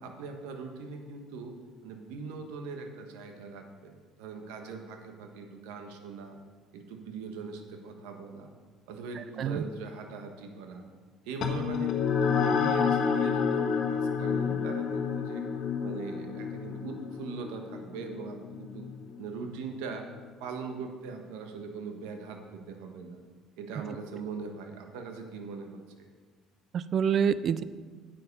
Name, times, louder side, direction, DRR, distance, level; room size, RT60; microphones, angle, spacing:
voice 1, 0.0-1.5 1.8-6.4 6.7-8.5 8.9-10.8 11.2-12.0 12.2-15.4 15.8-18.9 19.2-20.1 20.4-23.2 23.6-26.1, right 4 dB, 85° right, 5 dB, 1.3 m, -41 dB
voice 2, 9.2-9.6 26.7-27.6, right 7 dB, 50° right, 16 dB, 0.5 m, -27 dB
sound 1, 11.4-20.3, left 6 dB, 60° left, 1.4 m, -30 dB
9.7 x 7.7 x 5.4 m, 1.5 s
supercardioid pair, 90°, 0 cm